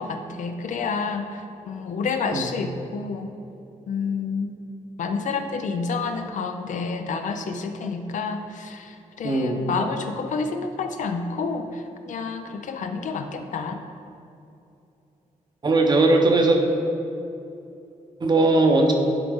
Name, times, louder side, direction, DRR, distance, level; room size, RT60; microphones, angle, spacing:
voice 1, 0.0-3.3 3.9-4.5 5.0-13.8, left 4 dB, 70° left, 7 dB, 0.5 m, -29 dB
voice 2, 9.2-9.6 15.6-16.6 18.2-18.9, right 2 dB, 35° right, 3 dB, 0.7 m, -19 dB
10.5 x 4.0 x 3.6 m, 2.7 s
wide cardioid pair, 140°, 13 cm